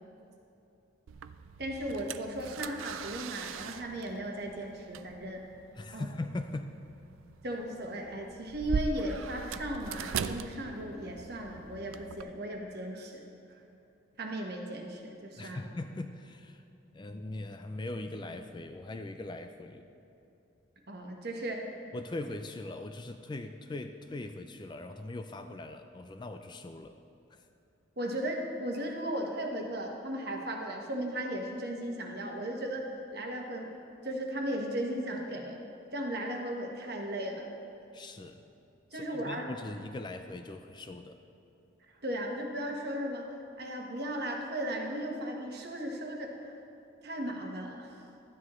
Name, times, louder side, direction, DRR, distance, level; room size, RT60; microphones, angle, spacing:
sound 1, 1.1-12.2, right 7 dB, 85° right, 0.4 m, -40 dB
voice 1, 1.6-5.4 5.9-6.1 7.4-13.3 14.2-15.6 20.9-21.7 28.0-33.8 34.0-35.6 35.9-37.5 38.9-39.5 42.0-46.5 47.0-47.9, right 1 dB, 55° right, 1 dB, 1.2 m, -36 dB
voice 2, 5.8-6.7 15.4-16.6 16.9-19.9 21.9-27.0 27.3-27.5 37.9-38.5 38.9-41.2, left 2 dB, 20° left, 7 dB, 0.3 m, -40 dB
13.0 x 9.7 x 3.1 m, 2.8 s
head